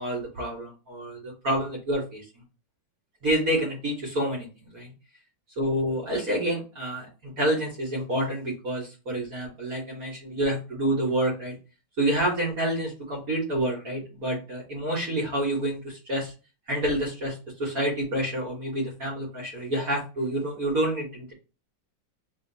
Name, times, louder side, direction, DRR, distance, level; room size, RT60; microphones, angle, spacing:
voice 1, 0.0-2.2 3.2-4.5 4.7-4.9 5.6-11.5 12.0-16.3 16.7-21.3, right 1 dB, 50° right, -4 dB, 1.7 m, -28 dB
3.7 x 2.8 x 3.9 m, 0.33 s
omnidirectional pair, 2.1 m